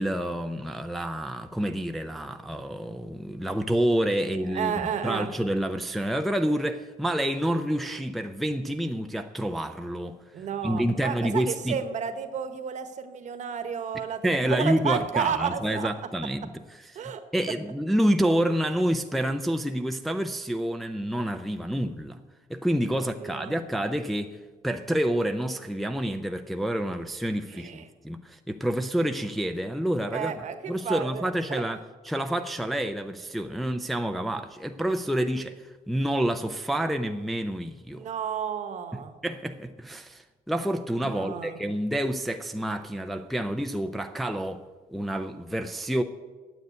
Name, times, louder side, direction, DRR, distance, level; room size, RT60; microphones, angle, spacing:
voice 1, 0.0-4.7 5.0-11.8 14.2-16.5 16.8-17.0 17.3-22.2 22.5-24.4 24.6-31.8 32.0-38.1 38.9-46.0, right 1 dB, ahead, 0.4 m, -28 dB
voice 2, 4.5-5.3 10.3-16.1 16.9-17.2 22.9-23.5 27.5-27.9 30.1-31.6 37.9-39.2 41.0-41.6, right 7 dB, 55° right, 1.1 m, -32 dB
9.4 x 7.9 x 9.5 m
cardioid pair, 165°, 15 cm